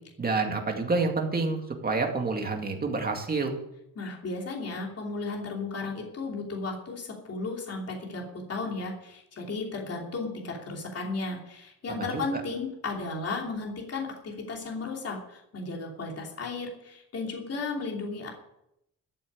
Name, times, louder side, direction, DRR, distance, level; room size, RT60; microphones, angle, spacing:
voice 1, 0.2-3.6 11.9-12.4, right 3 dB, 25° right, 2 dB, 2.2 m, -28 dB
voice 2, 3.9-18.3, left 3 dB, 45° left, -1 dB, 3.0 m, -34 dB
13.5 x 7.1 x 8.7 m, 0.82 s
wide cardioid pair, 160°, 36 cm